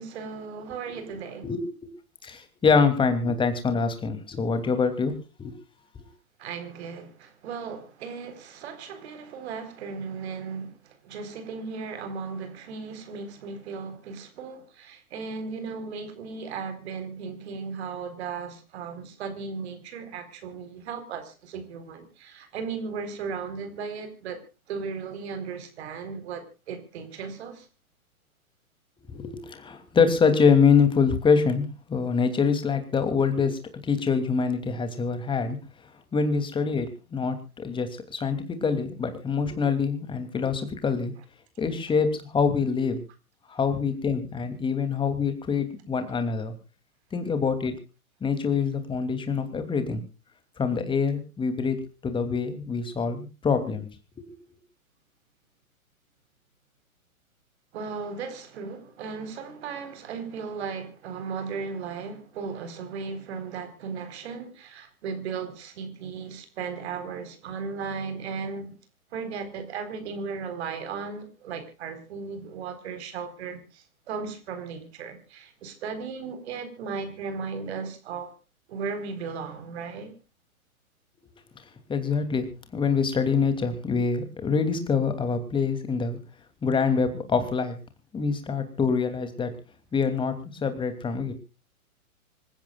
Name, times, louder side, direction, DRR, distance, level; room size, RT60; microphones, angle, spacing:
voice 1, 0.0-1.5 6.4-27.7 57.7-68.8 69.1-78.3 78.7-80.1, right 5 dB, 45° right, 4.2 m, -36 dB
voice 2, 2.2-5.1 5.4-5.5 29.1-35.6 36.1-41.1 41.6-43.0 43.5-46.5 47.1-47.7 48.2-50.0 50.6-51.8 52.0-53.9 81.9-82.5 82.7-86.2 86.6-87.8 88.1-89.5 89.9-90.3 90.6-91.3, left 5 dB, 10° left, 2.8 m, -25 dB
26.5 x 15.0 x 2.4 m
figure-of-eight pair, 115°, 43 cm